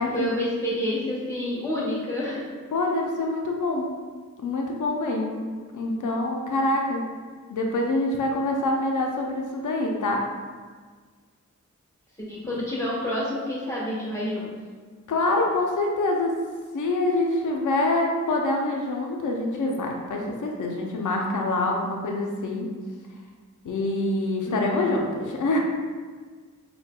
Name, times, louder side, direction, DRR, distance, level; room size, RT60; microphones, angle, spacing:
voice 1, 0.0-2.5 12.2-14.5 24.4-25.0, left 1 dB, 10° left, -7 dB, 1.2 m, -29 dB
voice 2, 2.7-3.9 4.4-5.5 5.7-7.0 7.5-10.2 12.5-12.6 15.1-16.3 16.7-22.7 23.6-25.6, left 2 dB, 75° left, 0 dB, 0.5 m, -25 dB
4.1 x 2.2 x 2.2 m, 1.5 s
cardioid pair, 50°, 31 cm